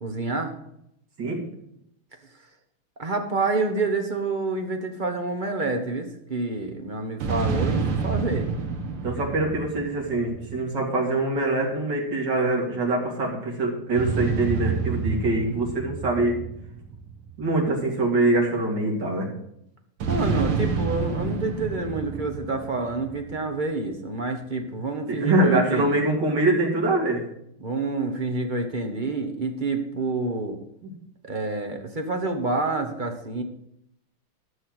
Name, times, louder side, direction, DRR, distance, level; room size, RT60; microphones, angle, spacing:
voice 1, 0.0-0.5 3.0-8.5 20.1-26.0 27.6-30.6 31.2-33.4, right 3 dB, 30° right, 4 dB, 1.0 m, -28 dB
sound 1, 7.2-10.8 14.0-17.6 20.0-23.4, right 5 dB, 85° right, 2.3 m, -28 dB
voice 2, 9.0-16.4 17.4-19.3 25.1-27.2 30.8-30.9, right 2 dB, 55° right, -1 dB, 3.2 m, -24 dB
12.5 x 6.5 x 6.2 m, 0.76 s
omnidirectional pair, 2.3 m